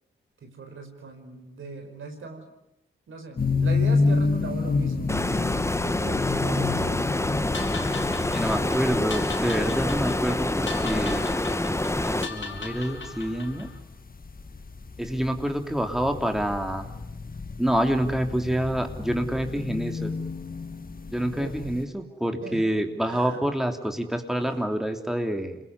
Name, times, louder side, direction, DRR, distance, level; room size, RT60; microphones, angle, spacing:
voice 1, 0.4-2.5 3.1-5.2 5.8-7.1 21.2-21.7 22.4-22.7 23.0-23.4 24.4-24.6, right 3 dB, 75° right, 4 dB, 5.1 m, -39 dB
sound 1, 3.4-21.8, left 4 dB, 45° left, 2.1 m, -30 dB
Stream, 5.1-12.3, left 1 dB, 15° left, 1.2 m, -27 dB
sound 2, 7.5-13.8, left 4 dB, 70° left, 4.2 m, -39 dB
voice 2, 8.3-11.3 12.0-13.7 15.0-16.9 17.6-20.1 21.1-25.6, right 1 dB, ahead, 4 dB, 3.2 m, -27 dB
27.0 x 21.0 x 9.7 m, 0.89 s
supercardioid pair, 45°, 21 cm